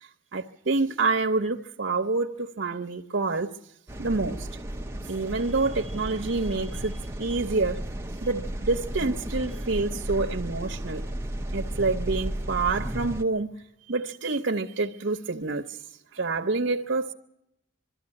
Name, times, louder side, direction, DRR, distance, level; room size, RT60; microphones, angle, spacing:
voice 1, 0.0-3.5 4.0-4.5 5.1-7.8 8.2-11.0 11.5-13.5 13.9-15.8 16.1-17.1, right 3 dB, 65° right, 0.8 m, -27 dB
sound 1, 3.9-13.2, right 1 dB, 10° right, 0.7 m, -34 dB
22.5 x 13.0 x 9.8 m
head